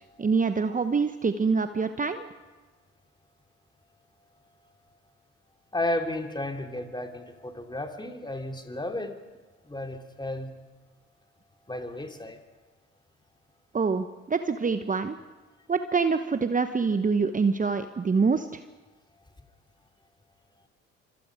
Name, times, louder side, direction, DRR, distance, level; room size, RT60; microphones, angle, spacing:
voice 1, 0.2-2.3 13.7-15.2 15.7-18.6, right 5 dB, 25° right, 9 dB, 1.1 m, -25 dB
voice 2, 5.7-9.2 9.6-10.5 11.7-12.4 19.4-19.5, left 1 dB, 15° left, 4 dB, 3.0 m, -33 dB
26.0 x 26.0 x 5.0 m, 1.3 s
hypercardioid pair, 55°, 34 cm